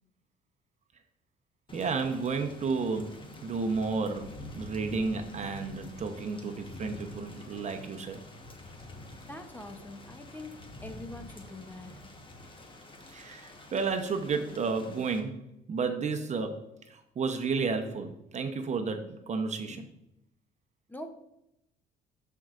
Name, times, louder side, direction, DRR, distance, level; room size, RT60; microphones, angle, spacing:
Thunder / Rain, 1.7-15.2, left 1 dB, 25° left, 1.2 m, -47 dB
voice 1, 1.7-8.2 13.1-19.9, right 4 dB, 40° right, 6 dB, 0.8 m, -32 dB
voice 2, 9.3-11.9 20.9-21.1, left 1 dB, 10° left, 6 dB, 0.9 m, -44 dB
13.0 x 4.6 x 2.5 m, 0.83 s
supercardioid pair, 80°, 18 cm